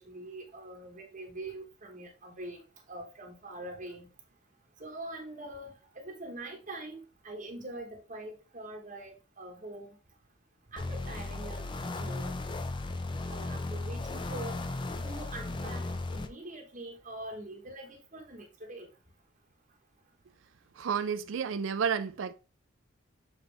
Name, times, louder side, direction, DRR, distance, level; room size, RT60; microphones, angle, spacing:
voice 1, 0.0-2.6 2.9-4.1 4.8-10.0 10.7-12.5 13.3-14.6 15.0-18.9, right 2 dB, 35° right, 1.0 m, -44 dB
sound 1, 10.8-16.3, left 2 dB, 20° left, 0.4 m, -36 dB
voice 2, 20.8-22.3, right 6 dB, 65° right, 0.4 m, -31 dB
7.1 x 4.0 x 3.3 m
head